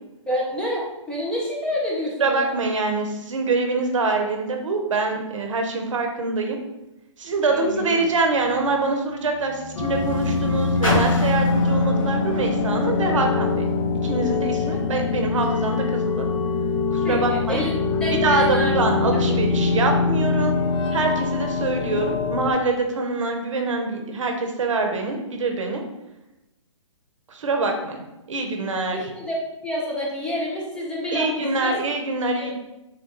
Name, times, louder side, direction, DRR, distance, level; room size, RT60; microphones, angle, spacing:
voice 1, 0.3-2.4 7.5-8.0 17.0-18.8 19.3-19.4 28.9-29.4 29.6-31.7 32.4-32.5, left 1 dB, 5° left, -4 dB, 0.4 m, -28 dB
voice 2, 2.2-6.6 7.2-13.7 14.0-16.3 16.9-17.6 18.1-20.6 20.9-25.8 27.3-28.0 28.3-29.1 31.1-32.5, right 3 dB, 70° right, 3 dB, 0.7 m, -24 dB
Car, 7.2-13.8 14.6-14.7, left 1 dB, 85° left, 1.1 m, -33 dB
sound 1, 9.8-22.5, left 4 dB, 65° left, 0.5 m, -23 dB
3.8 x 2.2 x 2.9 m, 0.95 s
hypercardioid pair, 135°, 17 cm